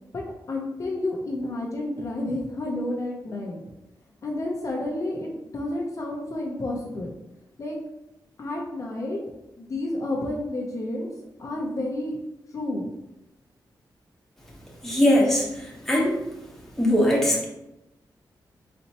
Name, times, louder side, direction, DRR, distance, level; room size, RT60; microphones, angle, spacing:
voice 1, 0.5-3.6 4.2-7.1 7.6-7.8 8.4-9.2 9.6-11.1 11.4-12.2 12.5-12.9, left 1 dB, 45° left, -1 dB, 0.6 m, -30 dB
voice 2, 14.8-16.2 16.8-17.4, left 1 dB, 5° left, -4 dB, 1.0 m, -21 dB
4.2 x 4.2 x 2.9 m, 0.92 s
wide cardioid pair, 165°, 8 cm